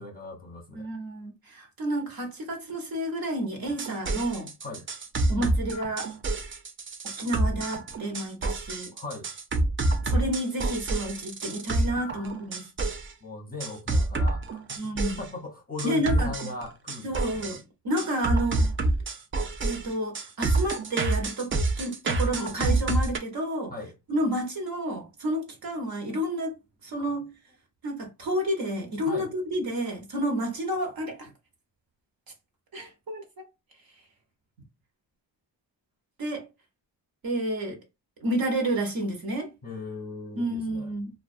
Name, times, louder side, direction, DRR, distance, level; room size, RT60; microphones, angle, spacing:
voice 1, 0.0-0.9 4.6-4.8 8.9-9.3 12.1-12.4 13.2-17.5 23.7-23.9 27.0-27.1 29.0-29.3 39.6-40.9, left 3 dB, 20° left, 0.8 m, -39 dB
voice 2, 0.7-4.5 5.3-6.1 7.0-8.9 10.0-12.6 14.8-15.2 15.8-16.3 17.0-17.6 17.8-18.7 19.6-23.7 24.1-26.5 26.8-27.3 27.8-31.3 32.7-33.5 36.2-36.5 37.2-37.8 38.2-39.5 40.4-41.1, right 1 dB, 55° right, 1.0 m, -30 dB
sound 1, 3.7-13.1 13.6-15.3 15.8-17.6 18.0-23.2, right 2 dB, 30° right, 0.4 m, -27 dB
2.3 x 2.2 x 2.5 m
cardioid pair, 110°, 43 cm